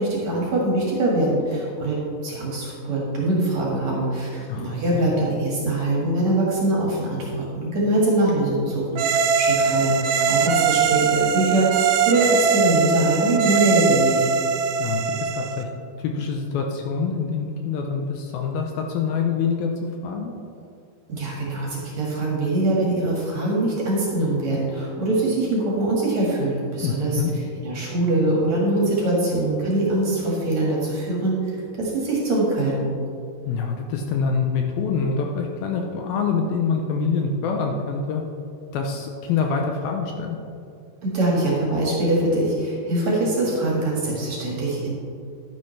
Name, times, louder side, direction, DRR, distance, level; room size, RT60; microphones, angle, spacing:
voice 1, 0.0-9.0 9.4-14.3 21.1-27.2 27.6-31.4 31.8-32.9 41.0-44.9, right 2 dB, 50° right, -4 dB, 2.6 m, -23 dB
voice 2, 4.5-5.0 14.8-15.7 16.0-19.7 20.0-20.3 26.8-27.3 33.5-38.2 38.7-40.4, left 5 dB, 75° left, 2 dB, 2.3 m, -25 dB
sound 1, 9.0-15.6, right 6 dB, 85° right, 2.7 m, -21 dB
11.5 x 9.9 x 3.2 m, 2.4 s
omnidirectional pair, 4.6 m